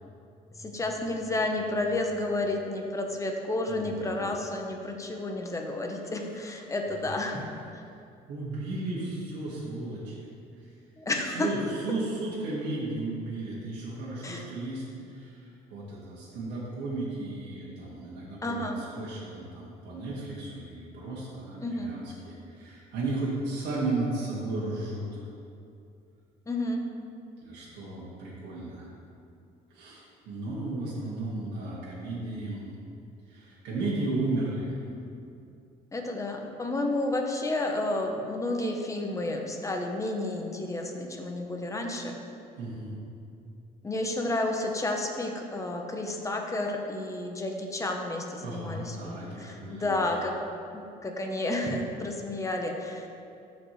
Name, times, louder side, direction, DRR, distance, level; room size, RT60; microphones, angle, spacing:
voice 1, 0.6-7.5 7.7-7.8 11.0-11.5 14.2-14.4 18.4-18.8 21.6-21.9 26.5-26.8 35.9-42.2 43.8-50.4 50.7-53.1, left 2 dB, 20° left, 2 dB, 1.0 m, -31 dB
voice 2, 3.7-4.2 4.9-5.0 6.0-6.6 6.9-7.5 8.3-10.3 10.6-10.8 11.2-25.2 27.4-28.9 29.7-32.6 33.3-34.7 42.6-42.9 48.4-50.0, right 2 dB, 80° right, -7 dB, 1.9 m, -35 dB
13.0 x 5.1 x 3.2 m, 2.5 s
cardioid pair, 110°, 17 cm